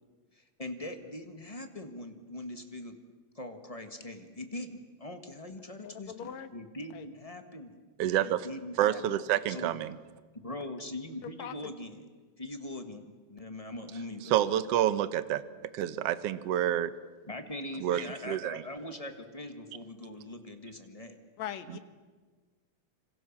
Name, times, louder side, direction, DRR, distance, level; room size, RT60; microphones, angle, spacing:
voice 1, 0.3-3.0 3.3-7.8 8.2-9.0 9.5-9.8 10.4-12.0 12.4-14.4 17.2-21.2, left 1 dB, 30° left, 6 dB, 0.6 m, -42 dB
voice 2, 5.8-6.5 6.9-7.1 11.2-11.6 21.4-21.8, left 9 dB, 65° left, 10 dB, 2.5 m, -40 dB
voice 3, 8.0-8.5 8.8-10.0 14.3-15.4 15.7-16.9 17.8-18.6, right 11 dB, 65° right, 14 dB, 1.7 m, -28 dB
26.5 x 26.0 x 7.3 m, 1.4 s
omnidirectional pair, 3.6 m